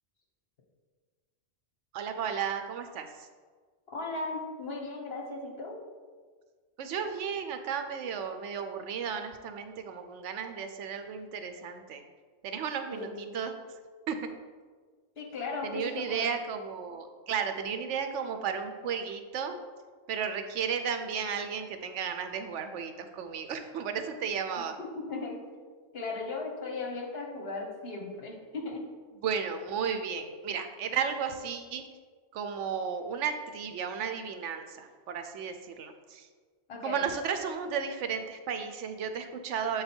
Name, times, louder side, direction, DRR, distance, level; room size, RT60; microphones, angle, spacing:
voice 1, 1.9-3.3 6.8-12.0 12.4-13.5 14.1-14.2 15.6-19.6 20.1-24.8 29.2-31.8 32.3-36.3 36.8-39.8, right 7 dB, 85° right, 7 dB, 0.9 m, -34 dB
voice 2, 3.9-5.7 12.9-13.4 15.2-16.3 24.8-25.4 25.9-28.8 36.7-37.0, left 3 dB, 60° left, 0 dB, 1.3 m, -37 dB
7.2 x 4.0 x 4.4 m, 1.5 s
omnidirectional pair, 1.2 m